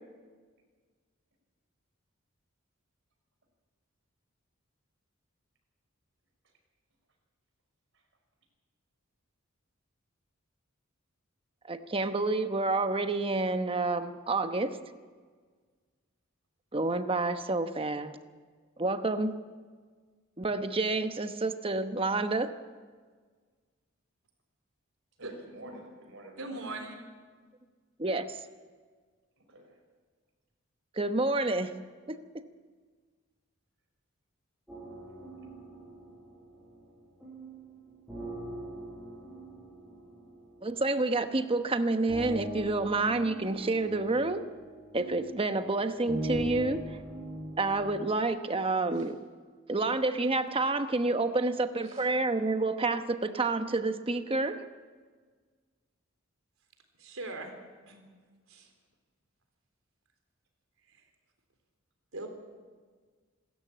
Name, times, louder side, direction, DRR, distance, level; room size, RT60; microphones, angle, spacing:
voice 1, 11.7-14.8 16.7-18.2 18.8-19.4 20.4-22.5 28.0-28.4 31.0-31.7 32.1-32.5 40.6-44.5 44.9-47.0 47.6-49.2 49.7-54.6, right 2 dB, 25° right, 9 dB, 1.1 m, -29 dB
voice 2, 25.2-26.8 29.4-29.8 48.9-49.1 51.8-52.1, right 1 dB, 65° right, 2 dB, 5.4 m, -50 dB
voice 3, 26.4-27.0 57.0-57.5 57.9-58.1 58.5-58.7 60.9-61.1 62.1-62.3, right 2 dB, 85° right, 5 dB, 3.9 m, -40 dB
sound 1, 34.7-48.1, right 1 dB, 5° right, 7.3 m, -42 dB
26.5 x 13.5 x 8.6 m, 1.5 s
head